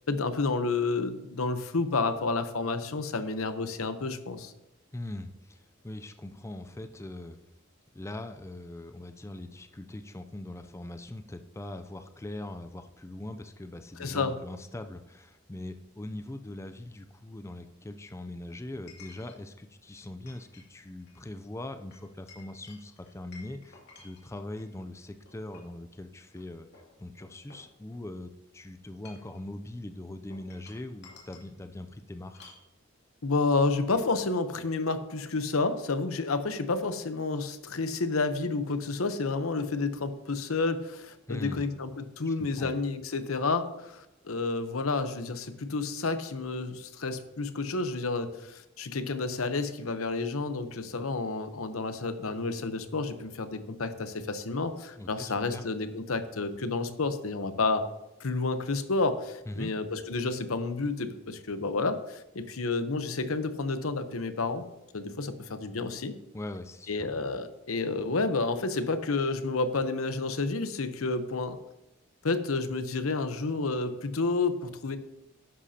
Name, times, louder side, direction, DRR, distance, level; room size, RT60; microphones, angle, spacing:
voice 1, 0.1-4.5 14.0-14.3 33.2-57.8 58.2-64.6 64.9-66.1 66.9-71.6 72.2-75.0, left 3 dB, 90° left, 10 dB, 0.9 m, -30 dB
voice 2, 4.9-7.4 7.9-32.4 41.3-41.7 42.2-42.7 55.0-55.6 59.5-59.7 66.3-67.1, left 1 dB, 15° left, 8 dB, 0.4 m, -41 dB
Chink clink, 15.4-15.5 18.9-19.4 19.9-20.7 21.0-21.2 21.9-24.7 25.3-25.8 26.3-26.4 26.7-28.2 28.9-29.4 30.3-31.5 32.3-32.7, left 4 dB, 55° left, 2.5 m, -53 dB
11.5 x 10.0 x 2.8 m, 0.90 s
head